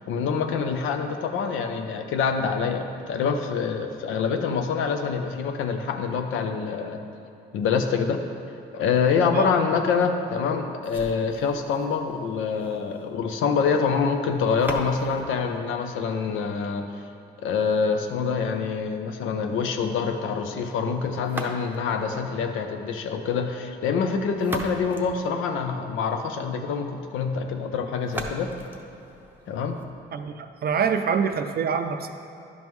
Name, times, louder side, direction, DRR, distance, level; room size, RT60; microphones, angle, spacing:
voice 1, 0.1-7.0 7.5-8.2 8.7-16.9 17.4-28.5 29.5-29.8, left 5 dB, 85° left, 6 dB, 0.6 m, -26 dB
sound 1, 10.8-16.8 21.2-22.1 24.1-26.0 28.0-30.0, right 1 dB, 10° right, 0.7 m, -39 dB
voice 2, 30.1-32.1, right 6 dB, 50° right, 7 dB, 0.4 m, -25 dB
11.0 x 5.2 x 3.1 m, 2.7 s
cardioid pair, 90°, 20 cm